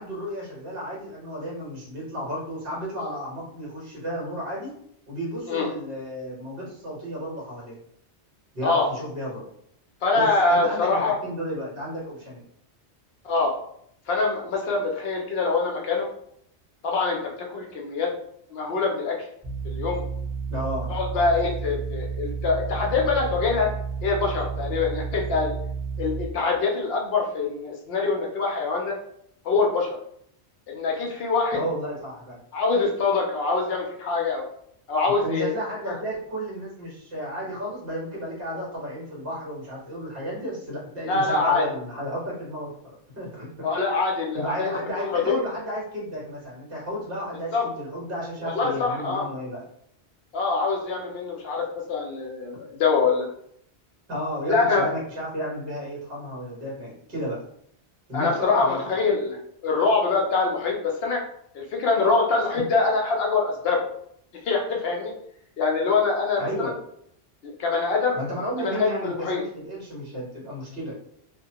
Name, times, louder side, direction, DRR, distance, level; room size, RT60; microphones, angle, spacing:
voice 1, 0.0-4.7 5.1-7.7 8.5-9.4 10.1-12.4 20.5-20.9 31.5-32.4 35.2-42.7 43.1-43.6 44.3-49.6 54.1-57.4 58.1-58.8 66.4-66.7 68.1-70.9, equal, 55° right, -6 dB, 1.5 m, -33 dB
voice 2, 10.0-11.1 13.2-13.5 14.1-16.1 16.8-18.1 18.5-19.2 19.6-20.0 20.9-23.7 24.0-25.6 26.0-29.0 29.4-29.9 30.7-31.6 32.5-34.4 34.9-35.6 35.9-36.0 41.0-41.6 43.6-44.8 45.1-45.4 47.5-47.7 48.4-49.3 50.3-53.3 54.5-54.9 58.1-61.2 61.5-63.9 64.5-65.1 65.6-66.7 67.4-68.2 68.6-69.4, left 4 dB, 65° left, 0 dB, 0.8 m, -24 dB
sound 1, 19.4-26.2, right 5 dB, 15° right, 0.9 m, -31 dB
2.9 x 2.1 x 2.8 m, 0.69 s
omnidirectional pair, 1.1 m